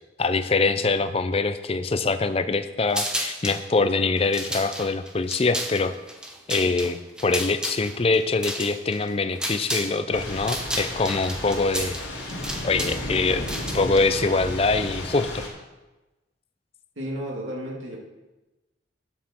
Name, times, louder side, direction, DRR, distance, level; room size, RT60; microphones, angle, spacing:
voice 1, 0.2-5.9 6.5-12.0 12.6-13.5 13.7-15.4, left 3 dB, 30° left, 11 dB, 0.4 m, -24 dB
sound 1, 2.9-3.6 4.2-10.0 10.2-14.0, equal, 5° right, 0.8 m, -32 dB
Thunder / Rain, 10.1-15.5, left 1 dB, 70° left, 2.4 m, -33 dB
voice 2, 17.0-18.0, equal, 80° right, -1 dB, 2.4 m, -32 dB
11.0 x 7.3 x 4.4 m, 1.1 s
head